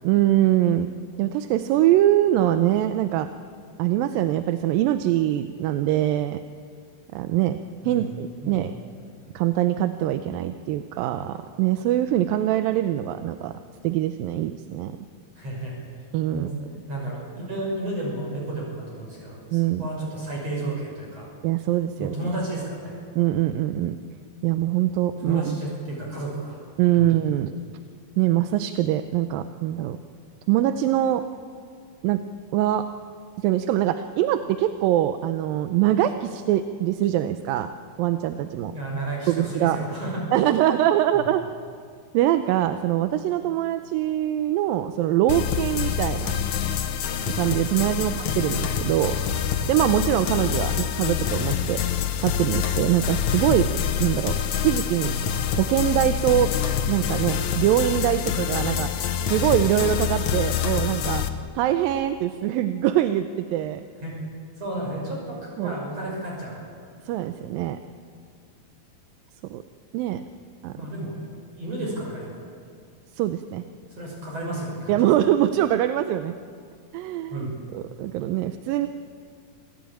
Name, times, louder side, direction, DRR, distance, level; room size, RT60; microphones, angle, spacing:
voice 1, 0.0-0.9 1.2-3.3 3.8-6.4 7.1-7.6 7.9-8.7 9.3-13.6 13.8-15.0 16.1-16.5 19.5-19.8 21.4-22.2 23.2-24.0 24.4-25.6 26.8-27.5 28.2-30.0 30.5-31.2 32.0-32.2 32.5-32.8 33.4-37.7 38.0-38.8 39.3-39.8 40.3-41.4 42.1-46.4 47.3-49.2 49.7-51.8 52.2-53.6 54.0-54.4 54.6-55.1 55.6-56.5 56.9-58.9 59.3-61.2 61.6-63.9 65.6-65.8 67.1-67.8 69.5-69.6 69.9-70.2 70.6-70.7 73.2-73.6 74.9-76.4 76.9-77.5 77.7-78.9, right 13 dB, 80° right, 9 dB, 2.4 m, -23 dB
voice 2, 15.4-15.8 16.3-16.5 16.9-21.3 22.0-23.0 25.2-26.6 27.0-27.1 38.7-40.2 41.1-41.2 48.0-48.2 50.7-50.8 53.5-53.6 64.0-64.2 64.6-66.6 70.8-71.2 71.5-72.3 74.0-75.0 77.3-77.5, right 1 dB, 40° right, -3 dB, 7.0 m, -32 dB
sound 1, 45.3-61.3, left 9 dB, 65° left, 2.2 m, -26 dB
27.5 x 16.0 x 8.8 m, 2.2 s
omnidirectional pair, 4.3 m